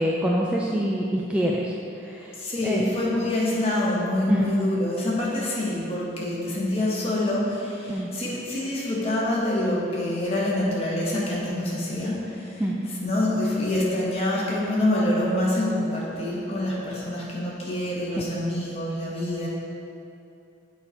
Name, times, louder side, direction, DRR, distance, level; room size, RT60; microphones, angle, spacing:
voice 1, 0.0-2.8 4.3-4.5 7.9-8.1 12.6-12.7 18.5-18.6, equal, 5° right, -3 dB, 0.3 m, -26 dB
voice 2, 2.4-12.6 13.0-19.5, left 1 dB, 30° left, -6 dB, 1.3 m, -26 dB
7.7 x 4.2 x 4.5 m, 2.7 s
head